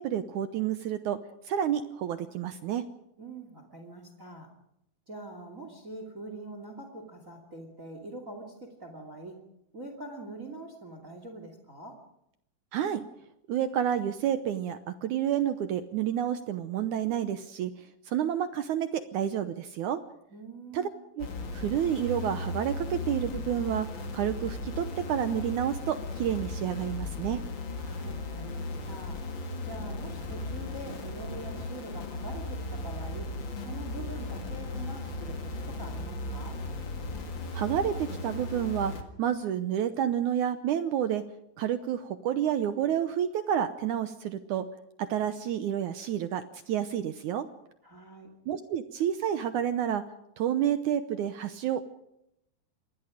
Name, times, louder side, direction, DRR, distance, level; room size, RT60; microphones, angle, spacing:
voice 1, 0.0-2.9 12.7-13.1 13.5-20.0 20.7-20.9 21.2-27.5 37.5-38.9 39.2-41.2 41.6-44.7 45.0-47.5 48.5-50.1 50.4-51.9, right 10 dB, 70° right, 10 dB, 1.9 m, -30 dB
voice 2, 3.2-4.5 5.1-9.4 9.7-12.0 20.3-21.0 27.8-29.2 29.6-33.3 33.6-36.6 47.8-48.3, right 2 dB, 25° right, 6 dB, 2.5 m, -44 dB
sound 1, 21.2-39.0, left 2 dB, 40° left, 2.1 m, -36 dB
27.5 x 21.5 x 5.1 m, 0.80 s
omnidirectional pair, 4.3 m